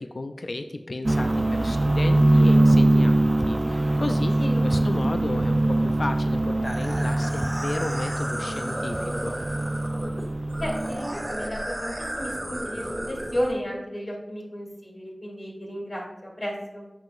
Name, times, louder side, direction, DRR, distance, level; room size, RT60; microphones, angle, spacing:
voice 1, 0.0-4.4 4.6-9.4, left 2 dB, 70° left, 7 dB, 0.3 m, -33 dB
sound 1, 1.0-11.3, right 1 dB, 40° right, 0.4 m, -23 dB
voice 2, 4.4-4.9 10.6-16.8, equal, 50° left, -3 dB, 2.0 m, -33 dB
sound 2, 6.6-13.5, right 1 dB, 15° right, 1.4 m, -33 dB
7.4 x 5.7 x 2.5 m, 1.1 s
wide cardioid pair, 60°, 0 cm